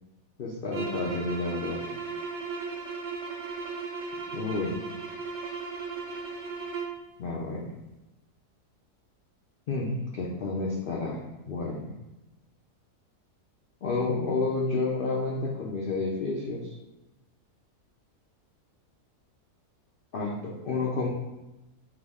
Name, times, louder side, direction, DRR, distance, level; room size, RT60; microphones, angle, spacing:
voice 1, 0.4-1.8 4.3-4.7 7.2-7.7 9.7-11.9 13.8-16.8 20.1-21.1, left 3 dB, 75° left, -3 dB, 0.5 m, -30 dB
sound 1, 0.7-7.0, right 4 dB, 60° right, 0.8 m, -36 dB
5.9 x 2.0 x 3.5 m, 1.0 s
omnidirectional pair, 1.7 m